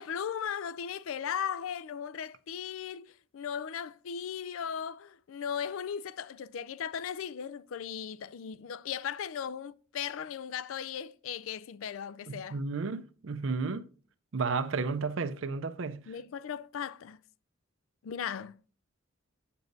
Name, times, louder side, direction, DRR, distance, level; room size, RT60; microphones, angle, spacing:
voice 1, 0.0-3.1 3.3-12.6 16.1-17.2 18.0-18.5, left 8 dB, 75° left, 0.4 m, -37 dB
voice 2, 12.3-13.9 14.3-16.0, right 4 dB, 65° right, 0.5 m, -32 dB
9.1 x 6.9 x 2.6 m
head